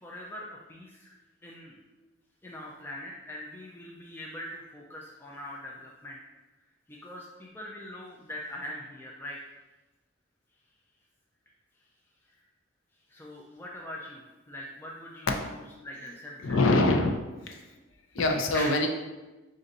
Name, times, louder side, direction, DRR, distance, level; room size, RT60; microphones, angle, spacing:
voice 1, 0.0-1.1 1.4-1.8 2.4-6.2 6.9-9.4 12.3-12.4 13.1-16.6 17.5-17.6 18.5-18.8, left 1 dB, 10° left, -3 dB, 0.3 m, -42 dB
voice 2, 16.4-17.2 18.1-18.9, left 2 dB, 80° left, 3 dB, 0.5 m, -24 dB
3.8 x 2.5 x 4.0 m, 1.1 s
head